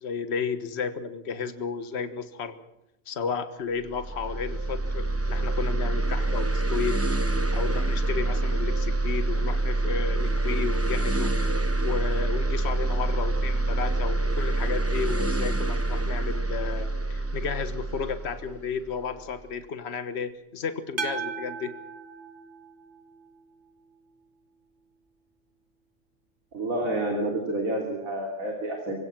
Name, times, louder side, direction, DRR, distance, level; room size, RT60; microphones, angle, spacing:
voice 1, 0.0-2.6 3.1-7.0 7.3-11.3 11.8-21.7, left 6 dB, 50° left, 10 dB, 1.6 m, -33 dB
sound 1, 3.9-19.3, right 2 dB, 10° right, 0.8 m, -26 dB
sound 2, 21.0-23.2, right 5 dB, 40° right, 1.6 m, -36 dB
voice 2, 26.5-28.9, right 1 dB, 75° right, 1 dB, 3.6 m, -29 dB
24.5 x 17.0 x 7.5 m, 0.84 s
omnidirectional pair, 1.4 m